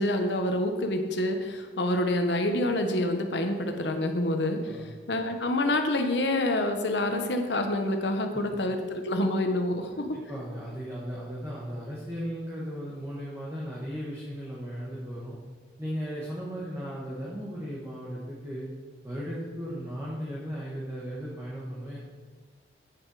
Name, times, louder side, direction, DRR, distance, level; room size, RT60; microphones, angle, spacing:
voice 1, 0.0-4.8 5.1-10.2, left 1 dB, 75° left, 5 dB, 1.0 m, -27 dB
voice 2, 10.1-15.4 15.8-18.7 19.0-22.0, equal, 15° right, -6 dB, 1.4 m, -36 dB
8.9 x 6.6 x 4.8 m, 1.4 s
head